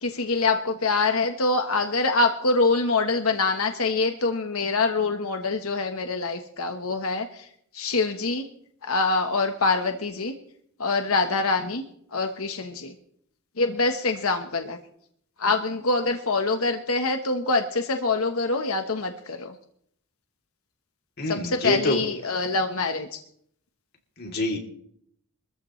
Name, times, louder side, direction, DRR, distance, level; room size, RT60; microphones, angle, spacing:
voice 1, 0.0-7.2 7.7-8.4 8.9-10.3 10.8-11.8 12.1-12.9 13.6-14.8 15.4-19.5 21.3-23.1, left 3 dB, 90° left, 5 dB, 1.2 m, -25 dB
voice 2, 21.2-22.0 22.3-22.4 24.2-24.6, left 1 dB, 50° left, 1 dB, 3.1 m, -27 dB
23.5 x 14.5 x 3.2 m, 0.67 s
head